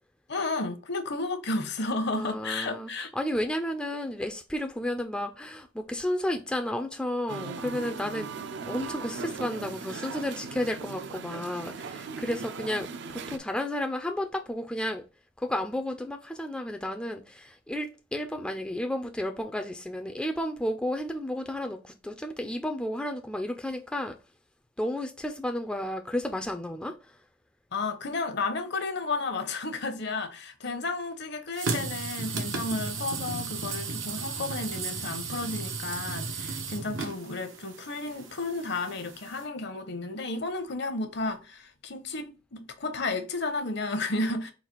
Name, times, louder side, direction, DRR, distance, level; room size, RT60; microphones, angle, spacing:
voice 1, 0.3-3.1 27.7-44.5, left 3 dB, 60° left, 0.7 m, -32 dB
voice 2, 2.1-15.0 15.4-24.2 24.8-27.0, left 1 dB, 5° left, 0.3 m, -32 dB
Musical instrument, 7.3-13.4, right 5 dB, 60° right, 0.4 m, -38 dB
sound 1, 31.6-39.4, right 4 dB, 90° right, 0.8 m, -35 dB
4.0 x 2.4 x 4.3 m
head